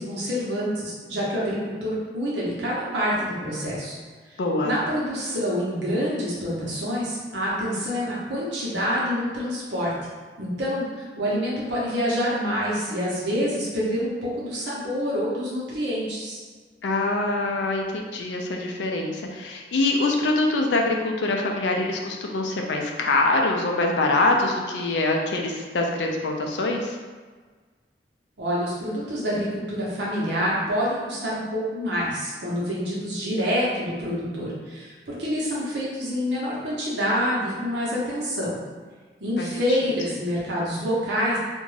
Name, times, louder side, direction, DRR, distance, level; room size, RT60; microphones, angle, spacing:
voice 1, 0.0-4.0 4.6-9.9 10.4-16.4 28.4-38.5 39.2-41.4, equal, 85° right, -6 dB, 0.9 m, -27 dB
voice 2, 4.4-4.7 16.8-27.0 39.4-39.8, left 2 dB, 85° left, 2 dB, 0.4 m, -24 dB
2.5 x 2.2 x 3.2 m, 1.5 s
head